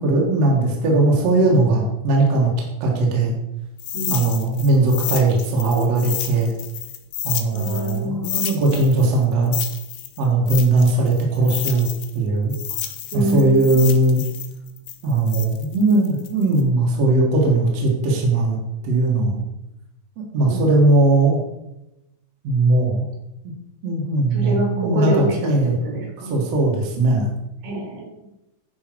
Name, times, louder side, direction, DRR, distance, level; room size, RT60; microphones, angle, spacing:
voice 1, 0.0-2.5 2.8-3.3 4.1-6.5 7.2-9.6 10.2-11.9 12.1-12.5 13.1-14.2 15.0-18.6 18.8-19.4 20.2-21.4 22.4-23.1 23.8-25.7 26.3-27.3, right 2 dB, 55° right, -2 dB, 2.6 m, -19 dB
sound 1, 3.8-8.0 8.2-12.2 12.5-16.6, left 11 dB, 85° left, 1.6 m, -30 dB
voice 2, 3.9-4.3 7.5-8.5 13.1-14.0 20.4-20.9 24.3-26.3 27.6-28.1, right 1 dB, 75° right, -1 dB, 4.4 m, -27 dB
10.5 x 5.8 x 4.6 m, 0.90 s
omnidirectional pair, 4.0 m